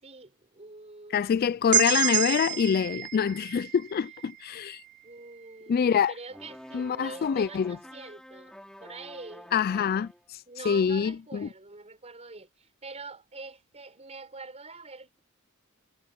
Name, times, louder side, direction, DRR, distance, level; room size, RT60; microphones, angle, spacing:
voice 1, 0.0-1.3 2.1-2.3 5.0-8.5 8.8-9.9 10.5-15.2, right 3 dB, 30° right, 5.1 m, -45 dB
voice 2, 1.1-4.8 5.7-6.1 6.7-7.8 9.5-10.4 10.7-11.5, left 7 dB, 45° left, 0.3 m, -25 dB
sound 1, 1.7-5.5, right 11 dB, 55° right, 1.7 m, -30 dB
sound 2, 6.3-10.3, equal, 5° left, 6.3 m, -48 dB
head